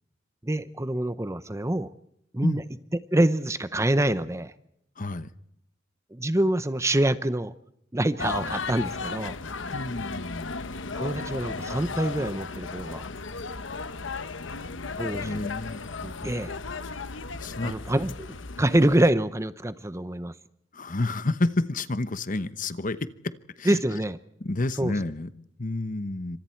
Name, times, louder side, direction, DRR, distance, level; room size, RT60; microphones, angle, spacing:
voice 1, 0.4-1.9 2.3-2.6 3.1-4.5 6.1-7.5 7.9-9.4 10.9-13.1 15.0-15.5 16.0-16.5 17.6-20.3 23.6-24.2 24.8-24.9, right 1 dB, 15° right, 13 dB, 0.8 m, -26 dB
voice 2, 5.0-5.3 9.7-10.6 14.9-15.8 17.4-17.7 20.7-23.1 23.6-23.8 24.4-26.4, left 2 dB, 45° left, 13 dB, 1.0 m, -30 dB
sound 1, 8.2-19.1, left 4 dB, 75° left, 1.1 m, -35 dB
28.0 x 25.5 x 4.5 m, 0.75 s
head